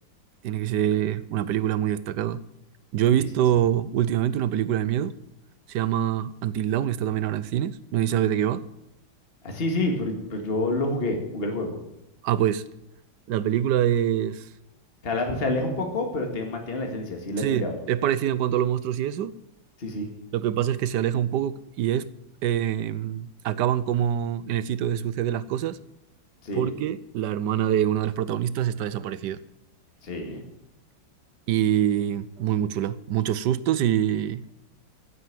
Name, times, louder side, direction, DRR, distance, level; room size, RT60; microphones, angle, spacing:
voice 1, 0.4-2.4 2.9-5.2 5.7-8.7 12.2-12.6 13.3-14.5 17.4-19.3 20.3-22.1 22.4-25.8 26.5-29.4 31.5-34.4, right 10 dB, 70° right, 16 dB, 1.2 m, -25 dB
voice 2, 9.4-11.8 15.0-17.8 19.8-20.1 26.4-26.7 30.0-30.4, left 2 dB, 30° left, 3 dB, 2.2 m, -28 dB
15.5 x 8.2 x 7.5 m, 0.83 s
omnidirectional pair, 2.1 m